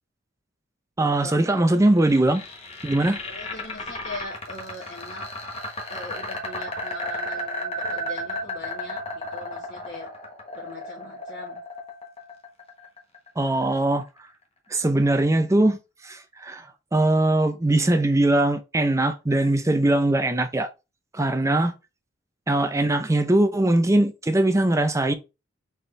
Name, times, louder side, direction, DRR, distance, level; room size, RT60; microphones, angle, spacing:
voice 1, 1.0-2.4 2.8-3.2 13.4-14.0 14.7-15.8 16.0-16.6 16.9-20.7 21.1-21.7 22.5-25.1, right 1 dB, 15° right, 0.6 m, -21 dB
sound 1, 1.7-13.7, left 1 dB, 30° left, 1.2 m, -34 dB
voice 2, 3.3-5.3 5.9-10.2 10.5-11.6, left 2 dB, 55° left, 1.5 m, -40 dB
4.2 x 3.6 x 3.3 m
head